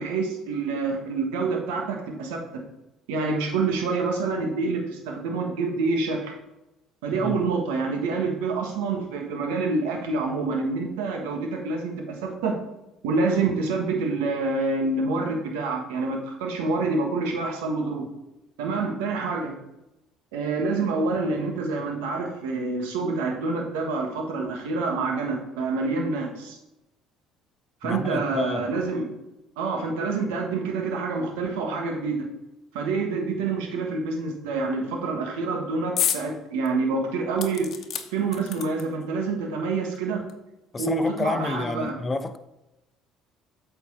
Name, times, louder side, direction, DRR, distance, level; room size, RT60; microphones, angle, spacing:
voice 1, 0.0-2.6 3.1-6.3 7.0-12.6 13.0-18.1 18.6-19.5 20.3-26.6 27.8-29.1 29.6-32.3 32.7-37.7 38.1-40.2 40.8-41.9, right 3 dB, 80° right, 1.5 m, -27 dB
voice 2, 27.8-28.7 40.7-42.4, left 3 dB, 30° left, 0.8 m, -29 dB
sound 1, 36.0-36.3 36.7-36.8 37.4-39.0 39.9-40.0 40.3-40.4, left 8 dB, 55° left, 1.0 m, -29 dB
8.3 x 4.4 x 5.6 m
hypercardioid pair, 65°, 0 cm